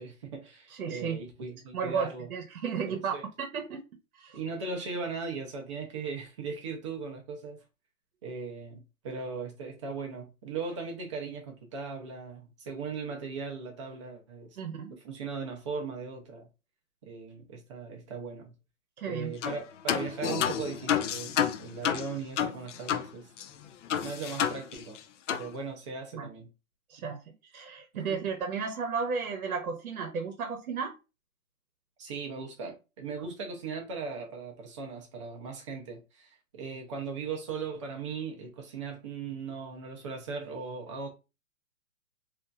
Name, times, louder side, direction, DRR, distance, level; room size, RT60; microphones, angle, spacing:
voice 1, 0.0-2.3 2.9-3.3 4.3-7.6 8.2-14.6 14.9-16.5 17.0-18.5 19.0-23.3 24.0-25.0 25.3-26.5 27.9-28.2 32.0-41.1, right 4 dB, 25° right, 0.5 m, -38 dB
voice 2, 0.8-1.2 1.7-3.8 4.1-4.4 14.6-15.0 19.0-19.3 26.1-26.3 26.9-27.2 27.5-30.9, right 6 dB, 80° right, 0.8 m, -33 dB
sound 1, 19.4-19.6 19.9-23.1 23.4-23.5 23.9-25.0 25.3-25.5, left 9 dB, 60° left, 0.5 m, -30 dB
2.8 x 2.6 x 2.3 m
hypercardioid pair, 150°, 42 cm